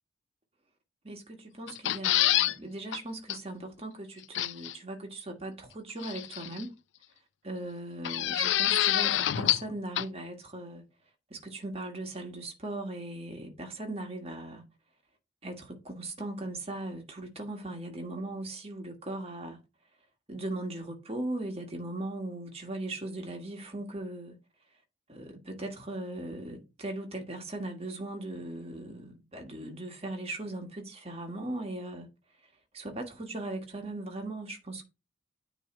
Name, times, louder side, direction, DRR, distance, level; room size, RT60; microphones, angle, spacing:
voice 1, 1.0-6.7 7.4-10.8 11.3-14.6 15.4-19.6 20.3-24.3 25.1-32.1 32.7-34.8, right 2 dB, 30° right, 1.5 m, -38 dB
sound 1, 1.7-2.5 2.9-3.0 3.3-3.4 4.3-4.7 6.0-6.6 8.0-9.7 10.0-10.1, left 13 dB, 65° left, 0.4 m, -26 dB
9.2 x 3.2 x 4.4 m
head